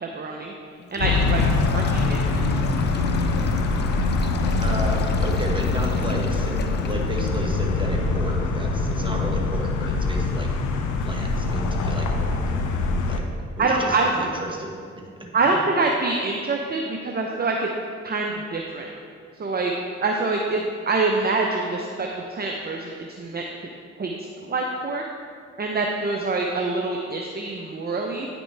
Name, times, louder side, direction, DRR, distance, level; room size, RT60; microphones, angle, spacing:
voice 1, 0.0-0.5 0.9-1.4 1.7-2.7 13.6-14.3 15.3-17.7 18.0-18.9 19.4-19.7 20.0-23.4 24.0-25.0 25.6-28.3, right 3 dB, 35° right, 1 dB, 0.7 m, -25 dB
Sink (filling or washing), 0.8-7.6, left 4 dB, 35° left, 0.6 m, -41 dB
sound 1, 1.0-13.2, left 3 dB, 85° left, 0.7 m, -23 dB
voice 2, 4.6-10.5 11.0-12.4 13.1-13.2 13.6-15.6, right 1 dB, 15° right, 0 dB, 1.5 m, -33 dB
9.1 x 6.0 x 3.4 m, 2.3 s
supercardioid pair, 55°, 29 cm